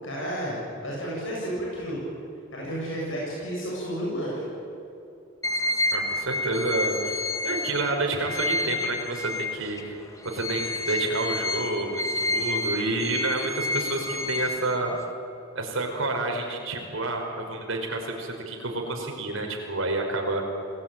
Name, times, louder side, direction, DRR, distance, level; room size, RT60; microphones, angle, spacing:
voice 1, 0.0-2.1 2.5-4.4, equal, 70° left, -4 dB, 8.0 m, -31 dB
sound 1, 5.4-9.8 10.2-15.1, left 2 dB, 15° left, 1.7 m, -29 dB
voice 2, 5.9-10.0 10.2-14.9 15.5-20.4, right 2 dB, 70° right, 2 dB, 5.2 m, -29 dB
28.5 x 19.5 x 9.1 m, 2.8 s
head